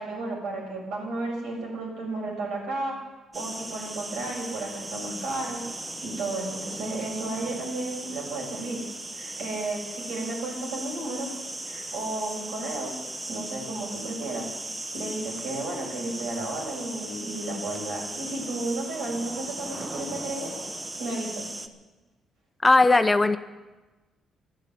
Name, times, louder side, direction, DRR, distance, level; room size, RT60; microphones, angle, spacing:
voice 1, 0.0-2.9 3.3-5.6 6.0-8.8 9.2-11.3 11.7-12.9 13.3-14.5 14.9-20.5 21.0-21.5, right 2 dB, 85° right, -2 dB, 7.2 m, -33 dB
sound 1, 3.3-21.7, right 2 dB, 20° right, 1.2 m, -37 dB
voice 2, 22.6-23.4, left 3 dB, 20° left, 10 dB, 0.8 m, -18 dB
12.0 x 11.5 x 9.4 m, 1.2 s
cardioid pair, 90°, 0 cm